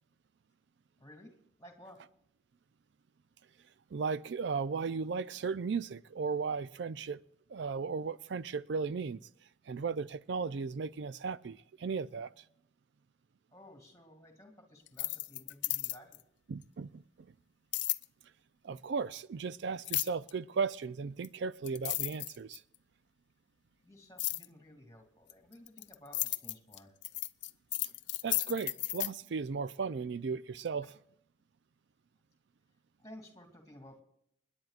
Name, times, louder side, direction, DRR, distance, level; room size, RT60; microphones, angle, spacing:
voice 1, 1.0-2.1 13.5-16.2 23.8-26.9 33.0-34.0, left 1 dB, 15° left, 2.6 m, -55 dB
voice 2, 3.9-7.2 7.5-9.3 9.7-12.4 16.5-17.3 18.6-22.6 28.2-30.9, right 5 dB, 65° right, 0.4 m, -36 dB
sound 1, 14.9-16.2 17.7-18.0 19.8-20.3 21.2-21.3 21.7-22.8 24.2-24.5 25.3-29.1, left 18 dB, 65° left, 0.5 m, -34 dB
29.0 x 10.5 x 2.4 m
head